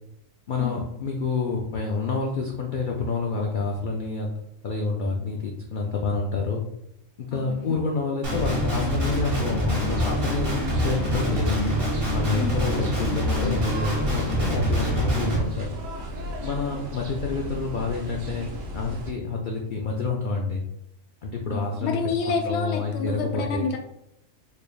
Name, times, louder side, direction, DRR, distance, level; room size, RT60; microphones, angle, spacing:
voice 1, 0.5-6.6 7.2-11.8 12.1-15.7 16.4-20.6 21.2-22.0 22.3-23.7, left 4 dB, 80° left, -1 dB, 0.4 m, -28 dB
voice 2, 7.3-7.8 12.4-12.9 21.5-23.8, left 4 dB, 60° left, 3 dB, 0.8 m, -29 dB
Guitar, 8.2-15.4, equal, 45° right, 1.4 m, -25 dB
sound 1, 9.8-19.1, left 1 dB, 70° right, 1.1 m, -35 dB
4.3 x 3.2 x 2.2 m, 0.80 s
omnidirectional pair, 1.4 m